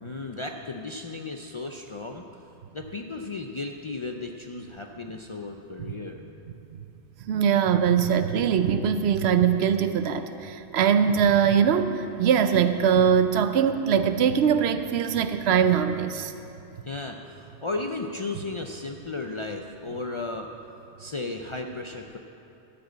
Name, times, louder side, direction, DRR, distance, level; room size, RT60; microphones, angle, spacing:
voice 1, 0.0-2.2 2.7-6.2 16.9-20.5 21.0-22.2, left 3 dB, 45° left, 3 dB, 0.4 m, -35 dB
voice 2, 7.3-16.3, right 7 dB, 80° right, 9 dB, 0.9 m, -22 dB
13.0 x 5.0 x 8.0 m, 2.8 s
omnidirectional pair, 1.1 m